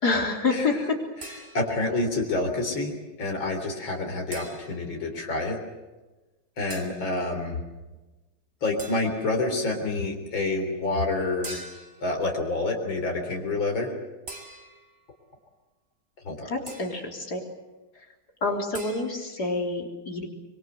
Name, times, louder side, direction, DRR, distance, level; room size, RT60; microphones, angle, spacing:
voice 1, 0.0-1.0 16.5-17.4 18.0-18.1 18.4-20.3, left 3 dB, 55° left, 2 dB, 4.1 m, -27 dB
voice 2, 1.2-2.9 3.2-5.6 6.6-7.6 8.6-11.6 12.0-13.9 16.2-16.5, left 2 dB, 80° left, 2 dB, 4.4 m, -28 dB
sound 1, 1.2-1.9 4.3-4.9 6.7-7.1 8.8-9.3 11.4-12.1 14.3-15.0 16.7-17.1 18.7-19.0, right 2 dB, 30° right, 3.1 m, -42 dB
25.5 x 23.0 x 7.9 m, 1.1 s
omnidirectional pair, 2.1 m